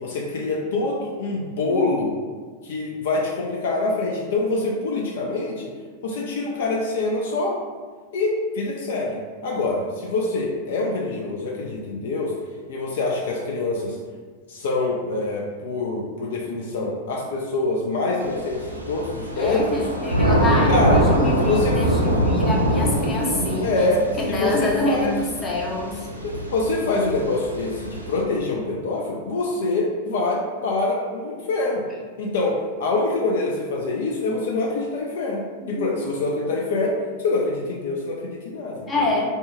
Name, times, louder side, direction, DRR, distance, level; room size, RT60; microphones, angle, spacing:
voice 1, 0.0-2.2 2.6-5.7 6.0-7.6 8.1-12.3 12.7-14.0 14.5-19.8 20.7-21.0 21.4-21.9 23.6-25.1 26.2-31.9 32.2-39.2, left 2 dB, 55° left, -1 dB, 0.3 m, -25 dB
Thunder / Rain, 18.2-28.2, equal, 85° right, 0.4 m, -24 dB
voice 2, 19.4-23.9 24.2-26.1 35.8-35.9 38.9-39.4, left 2 dB, 20° left, -2 dB, 0.6 m, -26 dB
2.7 x 2.2 x 3.5 m, 1.5 s
figure-of-eight pair, 90°, 0 cm